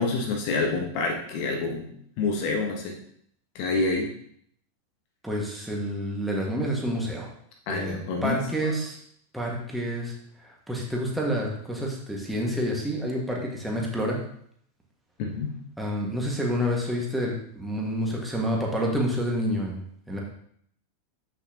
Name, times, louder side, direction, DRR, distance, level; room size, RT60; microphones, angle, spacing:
voice 1, 0.0-1.9 2.2-3.0 3.5-4.1 7.7-8.7 15.2-15.5, left 3 dB, 45° left, 2 dB, 1.2 m, -27 dB
voice 2, 5.2-7.3 7.7-9.0 9.3-10.1 10.4-14.2 15.8-19.8 20.1-20.2, equal, 5° right, -2 dB, 2.0 m, -28 dB
8.3 x 6.4 x 3.0 m, 0.67 s
figure-of-eight pair, 90°, 0 cm